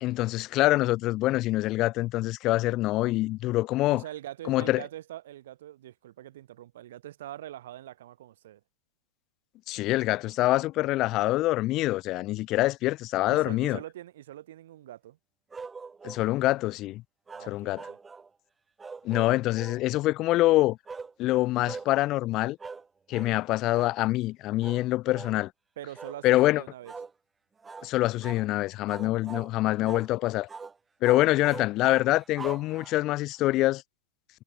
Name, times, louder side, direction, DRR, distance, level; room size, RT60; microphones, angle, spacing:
voice 1, 0.0-4.0 4.5-4.8 9.7-13.8 16.0-17.0 17.5-17.8 19.0-20.8 21.2-22.6 23.1-25.5 26.2-26.6 27.8-30.5 31.0-33.8, left 17 dB, 35° left, 0.3 m, -25 dB
voice 2, 3.9-8.6 13.3-15.2 17.3-18.0 25.8-26.9, right 13 dB, 60° right, 2.7 m, -43 dB
sound 1, 15.5-16.3 17.3-18.3 18.8-19.8 20.9-21.1 21.6-21.9 22.6-22.9 23.1-23.4 23.7-24.0 24.6-24.8 25.1-25.4 25.9-26.2 26.8-27.1 27.6-27.9 28.2-28.5 28.9-29.5 29.8-30.1 30.5-30.7 31.0-33.2, right 4 dB, 15° right, 1.1 m, -42 dB
figure-of-eight pair, 90°, 0 cm